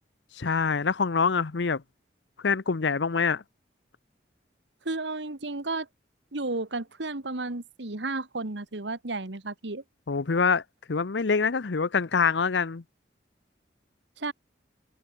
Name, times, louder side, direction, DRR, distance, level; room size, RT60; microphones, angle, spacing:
voice 1, 0.3-1.8 2.4-3.4 10.1-10.6 10.9-12.8, left 5 dB, 75° left, 0.7 m, -25 dB
voice 2, 4.8-5.9 6.3-9.8 14.2-14.3, right 3 dB, 80° right, 1.7 m, -33 dB
head